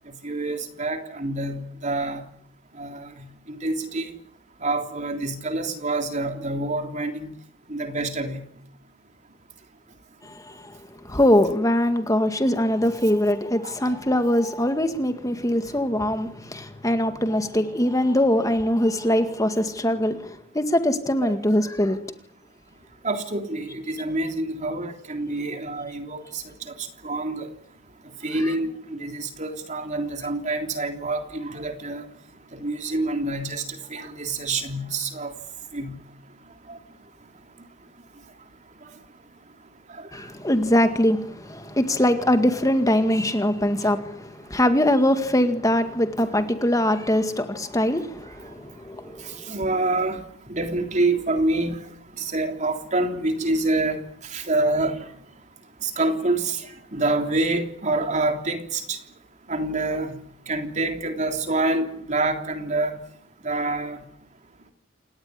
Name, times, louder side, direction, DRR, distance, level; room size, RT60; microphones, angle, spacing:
voice 1, 0.2-2.2 2.8-4.1 4.6-7.3 7.7-8.5 13.6-14.0 21.2-21.4 21.9-22.0 23.0-26.7 27.0-27.5 28.2-32.0 32.5-35.3 35.7-36.0 36.7-36.8 39.9-40.1 49.2-50.2 50.5-51.8 52.2-55.1 55.8-59.0 59.5-60.2 60.5-63.0 63.4-64.0, right 2 dB, 40° right, 3.4 m, -27 dB
voice 2, 11.1-20.3 20.5-22.0 40.1-49.2, left 1 dB, 15° left, 2.0 m, -22 dB
28.5 x 18.5 x 9.8 m
head